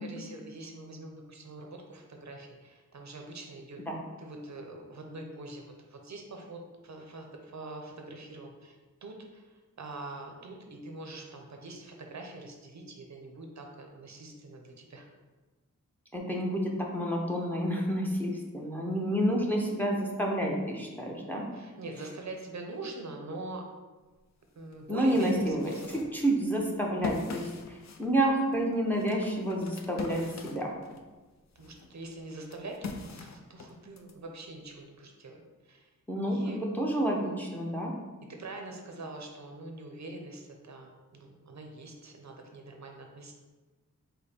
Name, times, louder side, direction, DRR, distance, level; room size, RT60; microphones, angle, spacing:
voice 1, 0.0-3.8 4.2-5.6 5.9-15.1 21.5-23.6 24.5-26.1 31.6-35.9 36.3-36.6 38.3-43.3, right 2 dB, 60° right, 2 dB, 0.6 m, -44 dB
voice 2, 16.1-21.5 24.9-25.7 26.1-30.7 36.1-37.9, right 1 dB, 5° left, -1 dB, 0.7 m, -29 dB
sound 1, 24.2-24.3 24.7-31.1 31.5-34.1, left 4 dB, 60° left, 0.5 m, -42 dB
5.0 x 2.1 x 4.3 m, 1.2 s
wide cardioid pair, 95°, 32 cm